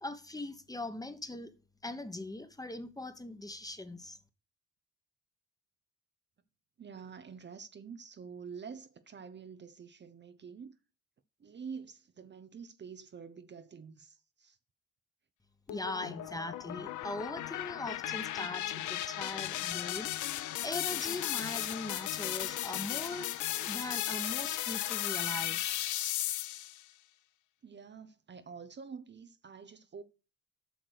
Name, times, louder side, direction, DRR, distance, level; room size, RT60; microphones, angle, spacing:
voice 1, 0.0-1.5 1.8-4.2 15.7-25.7, left 2 dB, 10° left, 1.2 m, -41 dB
voice 2, 6.8-10.7 11.4-14.6 27.6-30.0, right 6 dB, 35° right, 0.8 m, -47 dB
sound 1, 15.7-26.8, left 13 dB, 75° left, 0.7 m, -36 dB
8.0 x 6.2 x 6.4 m
cardioid pair, 90°, 30 cm